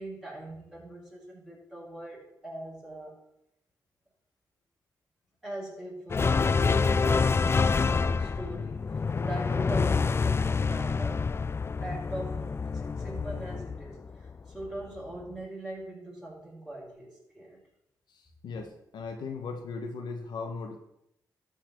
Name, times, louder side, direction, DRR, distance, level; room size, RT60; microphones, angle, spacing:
voice 1, 0.0-3.2 5.4-11.3 11.8-17.6, right 1 dB, 10° right, -4 dB, 4.8 m, -41 dB
sound 1, 6.1-14.7, left 4 dB, 35° left, 0.3 m, -27 dB
voice 2, 18.1-20.8, left 4 dB, 85° left, 4 dB, 1.3 m, -38 dB
12.5 x 4.3 x 6.7 m, 0.79 s
cardioid pair, 70°, 7 cm